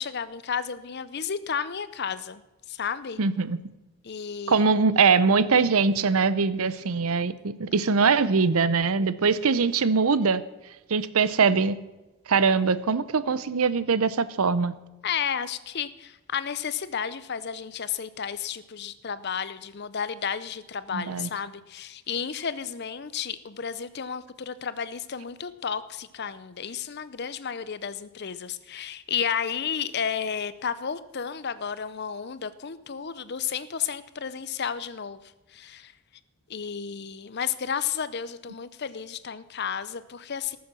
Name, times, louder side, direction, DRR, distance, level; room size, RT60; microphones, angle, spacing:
voice 1, 0.0-2.4 2.7-3.2 4.0-4.7 15.0-35.2 35.5-35.9 36.5-40.6, left 7 dB, 45° left, 15 dB, 0.6 m, -32 dB
voice 2, 3.2-3.6 4.5-10.4 10.9-11.8 12.3-14.7 20.9-21.3, right 5 dB, 75° right, 16 dB, 0.7 m, -22 dB
18.0 x 7.1 x 6.2 m, 1.0 s
head